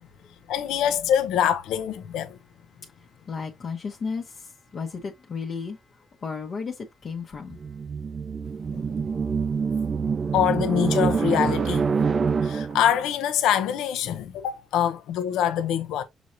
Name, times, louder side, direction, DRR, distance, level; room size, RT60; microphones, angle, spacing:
voice 1, 0.5-2.4 8.7-8.8 10.3-11.9 12.4-16.0, left 9 dB, 90° left, 0.7 m, -24 dB
voice 2, 3.3-4.2 4.7-5.8 6.2-6.7 7.0-7.6, left 5 dB, 50° left, 1.0 m, -33 dB
sound 1, 7.5-13.0, right 5 dB, 40° right, 0.4 m, -26 dB
6.1 x 3.2 x 2.6 m
cardioid pair, 90°, 0 cm